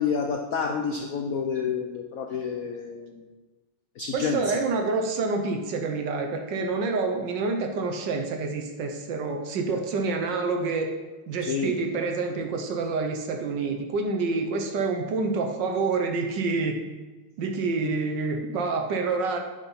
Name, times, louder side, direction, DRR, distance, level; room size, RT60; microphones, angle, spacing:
voice 1, 0.0-3.2 4.0-4.6 11.5-11.8 17.8-17.9, left 6 dB, 85° left, 4 dB, 0.7 m, -29 dB
voice 2, 4.1-10.9 11.3-16.8 17.4-19.4, right 4 dB, 65° right, 4 dB, 1.4 m, -27 dB
8.5 x 5.3 x 5.7 m, 1.3 s
omnidirectional pair, 2.3 m